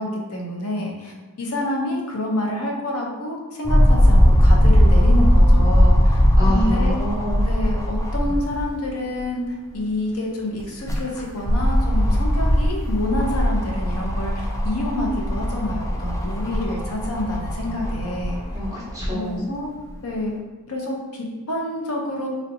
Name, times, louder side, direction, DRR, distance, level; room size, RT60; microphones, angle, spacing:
voice 1, 0.0-6.2 6.4-7.0 7.4-18.4 19.1-19.7 20.0-20.4 20.7-22.3, left 1 dB, 90° left, 0 dB, 0.7 m, -28 dB
sound 1, 3.6-8.7 9.2-9.3 10.6-19.1 19.9-20.0, equal, 15° left, 0.3 m, -18 dB
voice 2, 6.4-7.4 18.5-19.5, left 1 dB, 15° right, -8 dB, 0.8 m, -27 dB
3.2 x 2.6 x 2.6 m, 1.3 s
head